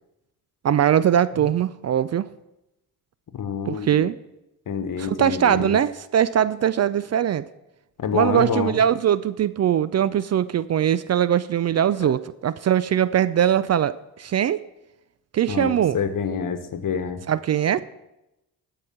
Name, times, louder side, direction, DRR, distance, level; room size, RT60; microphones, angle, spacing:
voice 1, 0.6-2.3 3.7-4.1 5.0-7.4 8.1-14.6 15.3-16.0 17.3-17.8, right 10 dB, 40° right, 17 dB, 0.4 m, -21 dB
voice 2, 3.3-4.1 4.7-5.8 8.0-8.8 15.5-17.2, left 7 dB, 55° left, 9 dB, 1.3 m, -27 dB
13.0 x 4.8 x 7.3 m, 0.92 s
supercardioid pair, 65°, 40 cm